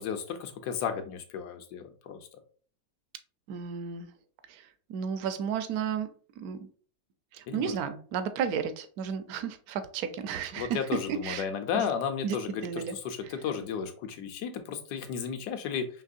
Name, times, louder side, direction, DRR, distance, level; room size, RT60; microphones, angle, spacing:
voice 1, 0.0-2.2 7.5-7.8 10.6-15.9, left 7 dB, 75° left, 7 dB, 1.1 m, -33 dB
voice 2, 3.5-4.1 4.5-6.7 7.3-10.8 11.2-11.5 11.7-11.9 12.2-12.4 12.6-12.9 13.2-13.3, right 7 dB, 70° right, 10 dB, 0.9 m, -33 dB
5.3 x 2.9 x 2.5 m, 0.44 s
omnidirectional pair, 1.9 m